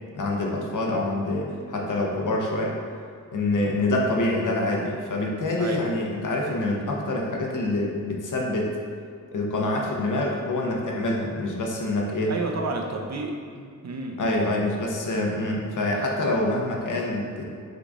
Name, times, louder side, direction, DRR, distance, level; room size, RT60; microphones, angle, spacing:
voice 1, 0.1-2.8 3.3-8.8 9.3-12.3 14.2-17.4, left 2 dB, 70° left, -1 dB, 0.7 m, -26 dB
voice 2, 12.3-14.2, right 3 dB, 55° right, 2 dB, 0.5 m, -31 dB
3.8 x 3.6 x 3.5 m, 2.1 s
wide cardioid pair, 125°, 32 cm